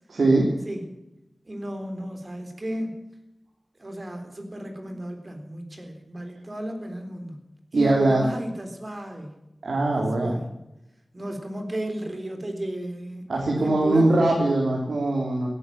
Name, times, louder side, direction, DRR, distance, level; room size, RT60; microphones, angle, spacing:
voice 1, 0.1-0.5 7.7-8.2 9.6-10.4 13.3-15.5, right 2 dB, 85° right, -1 dB, 3.4 m, -21 dB
voice 2, 0.6-1.0 1.5-3.1 3.8-7.4 7.7-9.3 10.0-10.5 11.1-13.3 13.6-14.2, right 1 dB, 35° right, 5 dB, 3.9 m, -34 dB
16.5 x 11.0 x 7.2 m, 0.91 s
wide cardioid pair, 80°, 0 cm